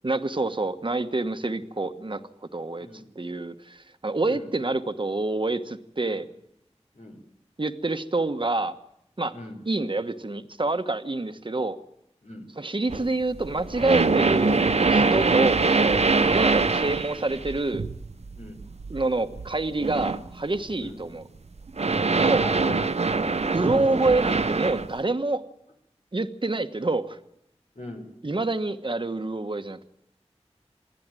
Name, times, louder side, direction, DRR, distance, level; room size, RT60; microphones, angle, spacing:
voice 1, 0.0-2.2 2.5-2.9 3.1-6.3 7.6-8.8 9.2-9.3 9.7-11.8 12.6-17.9 18.9-21.2 22.2-22.4 23.5-25.4 26.1-27.2 28.2-29.9, right 2 dB, 45° right, 9 dB, 1.2 m, -27 dB
voice 2, 6.9-7.3 9.3-9.6 12.2-12.5 18.3-18.6 20.8-21.0 22.4-23.5 27.7-28.1, left 2 dB, 85° left, 3 dB, 3.9 m, -40 dB
sound 1, 12.9-20.3 20.7-20.9 21.6-24.9, right 4 dB, 70° right, 0.7 m, -24 dB
27.5 x 10.5 x 9.0 m, 0.83 s
wide cardioid pair, 45°, 12 cm